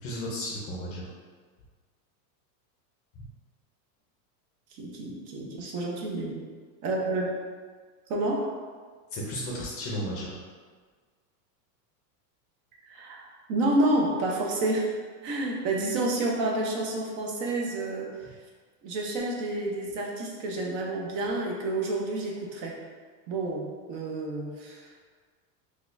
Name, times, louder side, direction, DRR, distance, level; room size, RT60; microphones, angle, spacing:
voice 1, 0.0-1.1 3.2-3.3 9.1-10.4, equal, 30° left, -3 dB, 0.5 m, -34 dB
voice 2, 4.7-6.4 6.8-7.3 8.1-8.5 12.9-13.2 13.5-14.9 15.2-18.1 18.8-22.8 23.3-24.9, right 2 dB, 50° right, -1 dB, 0.7 m, -29 dB
4.0 x 2.4 x 2.5 m, 1.5 s
supercardioid pair, 130°, 50 cm